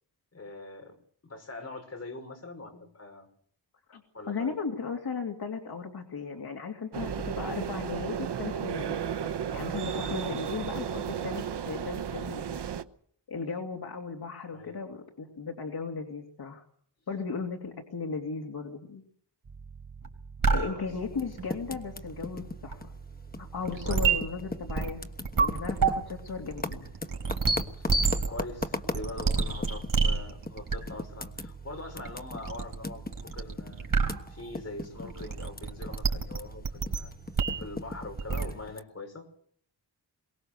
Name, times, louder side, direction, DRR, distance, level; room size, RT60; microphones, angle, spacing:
voice 1, 0.3-1.0 1.2-3.3 4.1-4.6 10.1-10.4 14.5-14.8 20.5-21.1 23.7-24.1 27.8-33.9 34.3-37.1 37.6-39.3, left 2 dB, 35° left, 4 dB, 5.3 m, -43 dB
voice 2, 4.3-9.0 9.5-12.6 13.3-16.6 17.1-19.0 20.5-22.9 23.4-25.0 25.4-26.9 35.0-35.1, left 5 dB, 65° left, 2 dB, 2.7 m, -36 dB
sound 1, 6.9-12.8, right 8 dB, 75° right, 1.0 m, -34 dB
sound 2, 19.5-38.5, right 5 dB, 55° right, 3.7 m, -31 dB
Typing, 21.1-23.9 24.2-30.0 30.5-30.6 30.9-36.0 36.3-38.8, left 3 dB, 20° left, 1.2 m, -38 dB
23.0 x 19.5 x 6.7 m, 0.62 s
wide cardioid pair, 130°, 41 cm